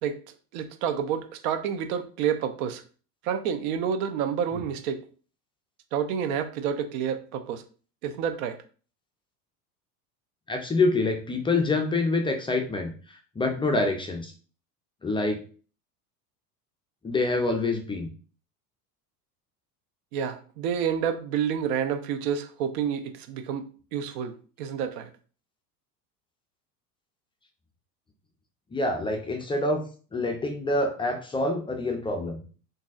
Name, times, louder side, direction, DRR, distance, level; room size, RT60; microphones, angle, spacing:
voice 1, 0.5-2.8 3.2-5.0 5.9-7.6 8.0-8.6 20.1-24.3 24.6-25.1, right 8 dB, 65° right, 8 dB, 0.7 m, -29 dB
voice 2, 10.5-14.3 15.0-15.4 17.0-18.1 28.7-29.9 30.1-32.4, left 2 dB, 10° left, 3 dB, 0.3 m, -26 dB
3.8 x 2.7 x 2.4 m, 0.39 s
hypercardioid pair, 90°, 47 cm